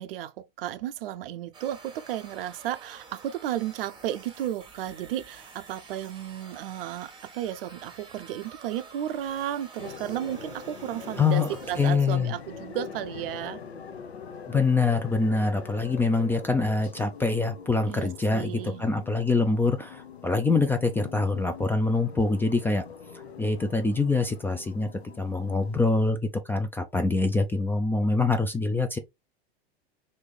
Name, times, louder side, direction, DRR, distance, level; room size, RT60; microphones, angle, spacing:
voice 1, 0.0-13.6 17.9-18.8, right 12 dB, 65° right, 0.5 m, -33 dB
sound 1, 1.5-11.9, right 4 dB, 15° right, 1.1 m, -49 dB
sound 2, 9.8-26.1, left 6 dB, 85° left, 0.7 m, -43 dB
voice 2, 11.2-11.5 11.8-12.3 14.5-18.5 18.8-22.8 23.4-24.9 25.2-29.0, left 3 dB, 5° left, 0.3 m, -25 dB
3.0 x 2.7 x 3.4 m
figure-of-eight pair, 90°, 32 cm